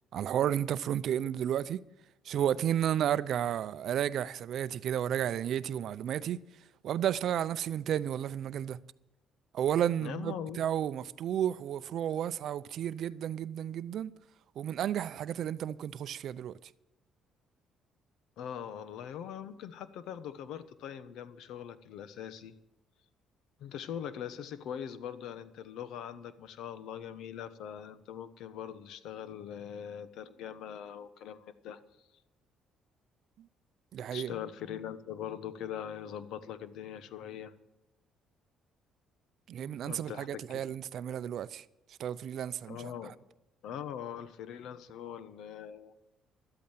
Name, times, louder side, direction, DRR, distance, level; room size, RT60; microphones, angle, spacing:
voice 1, 0.1-1.8 2.3-6.4 6.8-8.8 9.5-14.1 14.6-16.6 33.9-34.3 39.5-41.6 42.0-42.9, right 10 dB, 65° right, 0.5 m, -32 dB
voice 2, 10.0-10.6 18.4-22.5 23.6-31.8 34.1-37.5 39.6-40.6 42.7-43.1 43.6-45.9, left 9 dB, 75° left, 1.0 m, -42 dB
12.5 x 8.5 x 9.0 m
cardioid pair, 90°, 0 cm